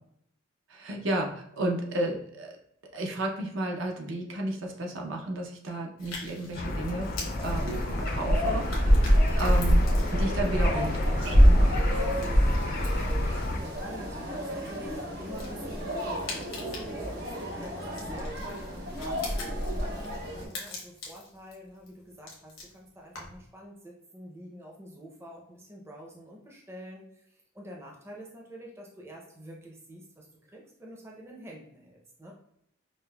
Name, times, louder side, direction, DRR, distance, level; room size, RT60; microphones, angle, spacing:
voice 1, 0.7-2.6 2.9-9.8 10.1-11.7, right 1 dB, 75° right, 1 dB, 0.6 m, -33 dB
sound 1, 6.0-23.5, left 3 dB, 85° left, 1.0 m, -45 dB
sound 2, 6.5-13.6, left 1 dB, 45° left, 0.4 m, -32 dB
sound 3, 7.4-20.5, equal, 50° right, 0.9 m, -26 dB
voice 2, 13.5-32.3, equal, 15° right, -2 dB, 0.5 m, -47 dB
5.1 x 2.0 x 2.2 m, 0.73 s
head